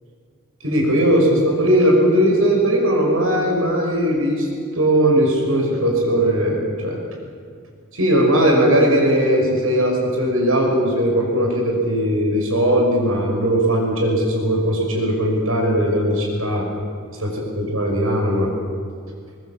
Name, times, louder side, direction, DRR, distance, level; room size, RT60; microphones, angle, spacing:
voice 1, 0.6-4.5 4.7-7.0 7.9-16.7 17.2-18.5, equal, 75° right, 1 dB, 6.0 m, -18 dB
22.0 x 20.0 x 7.3 m, 2.2 s
head